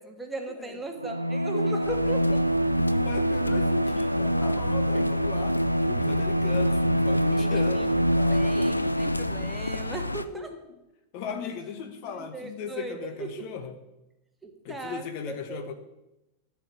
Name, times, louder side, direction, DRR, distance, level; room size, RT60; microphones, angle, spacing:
voice 1, 0.0-2.4 4.9-5.0 7.3-7.5 7.7-7.9 8.3-10.5 12.1-13.5 14.4-15.7, right 3 dB, 10° right, 4 dB, 1.4 m, -38 dB
Bowed string instrument, 1.0-9.5, equal, 85° right, 0.4 m, -25 dB
voice 2, 1.5-2.0 2.9-8.7 10.3-10.6 11.1-13.7 14.6-15.7, left 6 dB, 45° left, 8 dB, 1.0 m, -37 dB
sound 1, 1.8-10.2, left 2 dB, 85° left, 0.4 m, -33 dB
13.0 x 4.7 x 7.1 m, 0.95 s
figure-of-eight pair, 90°, 0 cm